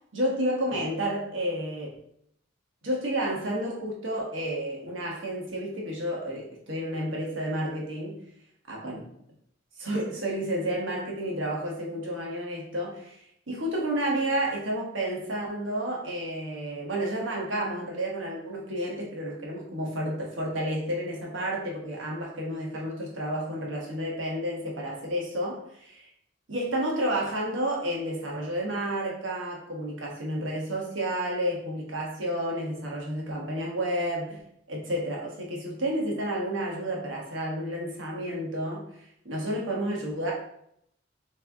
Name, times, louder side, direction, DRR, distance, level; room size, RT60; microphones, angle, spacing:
voice 1, 0.1-1.9 2.8-8.2 8.7-9.0 9.8-13.2 13.5-26.1 26.5-34.4 34.7-38.8 39.2-40.3, right 1 dB, 75° right, -2 dB, 1.2 m, -31 dB
3.7 x 3.2 x 3.5 m, 0.72 s
head